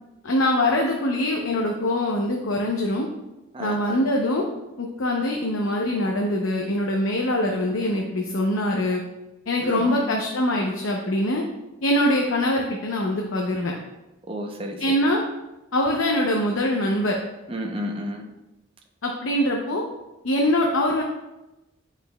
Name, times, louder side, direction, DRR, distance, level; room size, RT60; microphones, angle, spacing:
voice 1, 0.2-3.1 3.6-4.5 4.8-9.0 9.5-11.4 11.8-13.7 14.8-15.2 15.7-17.2 19.0-19.8 20.2-21.0, left 1 dB, 80° left, 0 dB, 0.7 m, -23 dB
voice 2, 3.5-4.0 9.6-10.1 14.3-15.0 17.5-18.2, equal, 25° right, 2 dB, 0.6 m, -31 dB
8.1 x 5.7 x 2.2 m, 0.99 s
head